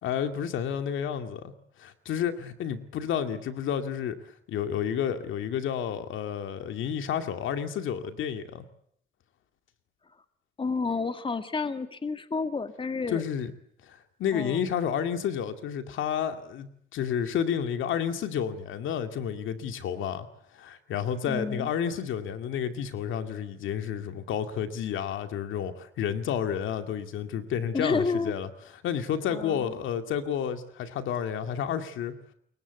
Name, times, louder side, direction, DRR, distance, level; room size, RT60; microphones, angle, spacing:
voice 1, 0.0-1.5 1.8-8.6 13.1-13.5 13.9-20.3 20.5-32.1, left 8 dB, 80° left, 8 dB, 2.3 m, -31 dB
voice 2, 10.6-13.2 14.3-14.6 21.3-21.7 27.7-28.4 29.3-29.7, left 4 dB, 25° left, 9 dB, 1.9 m, -30 dB
28.0 x 22.0 x 8.3 m, 0.68 s
cardioid pair, 90°, 20 cm